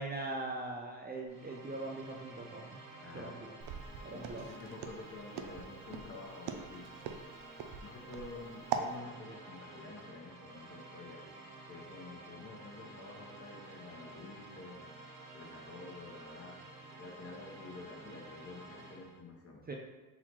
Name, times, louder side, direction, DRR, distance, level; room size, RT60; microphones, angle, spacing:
voice 1, 0.0-2.8 3.1-3.5 4.0-4.5 19.7-19.8, right 2 dB, 25° right, 0 dB, 0.5 m, -41 dB
sound 1, 1.3-19.2, right 2 dB, 45° right, 1.1 m, -51 dB
voice 2, 3.0-3.4 4.1-6.9 7.8-11.3 11.7-14.8 15.3-16.6 17.0-19.6, left 3 dB, 35° left, -1 dB, 1.2 m, -49 dB
Walk footsteps, 3.6-8.9, right 7 dB, 70° right, 0.6 m, -40 dB
4.0 x 2.8 x 4.5 m, 1.2 s
supercardioid pair, 80°, 40 cm